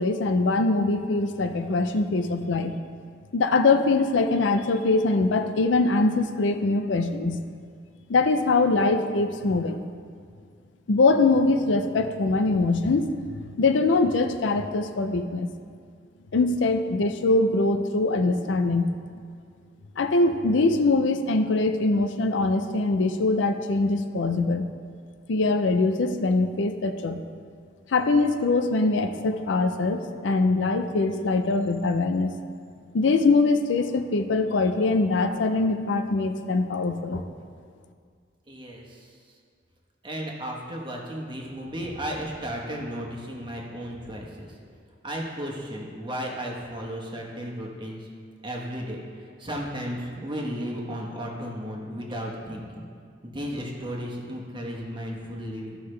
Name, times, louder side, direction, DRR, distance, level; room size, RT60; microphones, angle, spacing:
voice 1, 0.0-2.8 3.3-7.4 8.1-9.8 10.9-13.1 13.4-15.5 16.3-18.9 20.0-24.7 25.3-27.2 27.9-32.3 32.9-37.2, left 3 dB, 80° left, 7 dB, 0.5 m, -23 dB
voice 2, 38.5-39.1 40.0-44.6 45.0-48.1 48.4-52.9 53.2-55.8, equal, 25° right, -1 dB, 1.2 m, -34 dB
13.5 x 5.7 x 3.3 m, 2.1 s
head